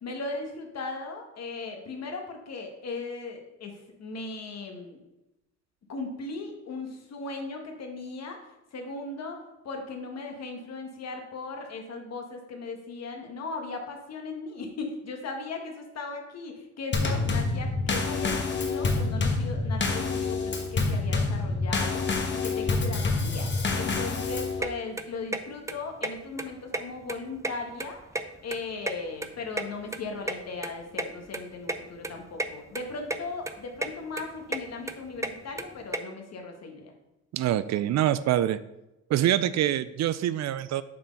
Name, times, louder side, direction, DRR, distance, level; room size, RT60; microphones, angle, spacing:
voice 1, 0.0-3.7 4.0-5.0 5.9-8.4 8.7-9.4 9.6-22.0 22.3-23.5 23.7-28.0 28.4-36.9, left 3 dB, 60° left, 3 dB, 1.6 m, -37 dB
Drum kit / Snare drum / Bass drum, 16.9-24.6, left 3 dB, 40° left, 1.2 m, -27 dB
sound 1, 24.6-24.7 25.0-25.4 25.7-25.8 26.0-26.1 26.4-27.1 27.4-28.6 28.9-30.4 30.6-30.7 31.0-31.1 31.3-31.4 31.7-31.8 32.0-32.5 32.7-33.2 33.4-33.9 34.2-36.0, right 2 dB, 10° right, 0.5 m, -31 dB
voice 2, 37.3-38.6 39.1-40.8, right 12 dB, 65° right, 15 dB, 0.5 m, -25 dB
7.5 x 4.5 x 5.3 m, 0.93 s
cardioid pair, 90°, 30 cm